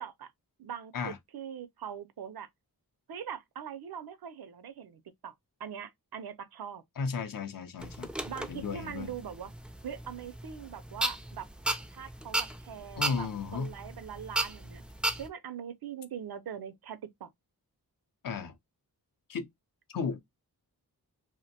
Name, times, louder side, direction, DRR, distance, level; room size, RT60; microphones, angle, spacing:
voice 1, 0.0-0.3 0.6-0.9 1.3-2.5 3.1-5.3 5.6-6.8 8.2-9.5 9.8-13.3 13.5-14.8 15.2-17.3, right 8 dB, 70° right, 0.5 m, -42 dB
voice 2, 7.0-8.1 8.5-9.1 13.0-13.7 18.2-18.5 19.3-19.5 19.9-20.2, left 5 dB, 60° left, 0.5 m, -34 dB
sound 1, 7.8-15.3, right 1 dB, 5° right, 0.3 m, -36 dB
2.5 x 2.1 x 2.6 m
wide cardioid pair, 55°, 39 cm